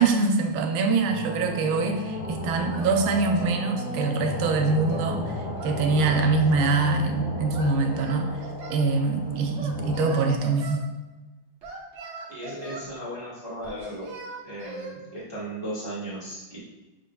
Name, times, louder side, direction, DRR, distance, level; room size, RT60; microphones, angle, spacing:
voice 1, 0.0-5.3 5.6-8.3 8.7-10.9, right 4 dB, 85° right, 4 dB, 1.4 m, -24 dB
sound 1, 1.0-10.4, left 1 dB, 85° left, 0.7 m, -34 dB
Singing, 2.7-3.6 3.9-5.1 5.6-6.8 7.5-8.8 9.5-10.8 11.6-12.9 13.6-15.0, right 2 dB, 60° right, 0.7 m, -40 dB
voice 2, 12.3-14.0 14.4-16.6, right 1 dB, 20° right, -8 dB, 0.7 m, -36 dB
6.3 x 3.7 x 2.2 m, 1.1 s
omnidirectional pair, 2.3 m